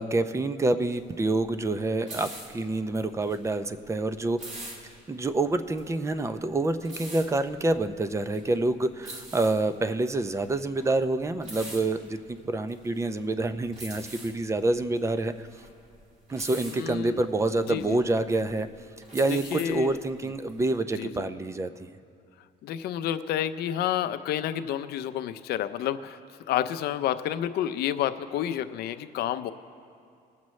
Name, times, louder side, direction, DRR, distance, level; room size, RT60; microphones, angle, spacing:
voice 1, 0.0-4.5 5.1-15.5 16.3-18.7 19.1-21.9, right 2 dB, 15° right, 11 dB, 0.5 m, -27 dB
sound 1, 0.8-20.7, right 1 dB, 45° right, 2.6 m, -45 dB
voice 2, 16.7-17.2 17.7-18.0 19.3-20.0 21.0-21.2 22.6-26.2 26.5-29.5, left 11 dB, 70° left, 10 dB, 0.6 m, -30 dB
22.5 x 7.5 x 3.2 m, 2.3 s
cardioid pair, 110°, 17 cm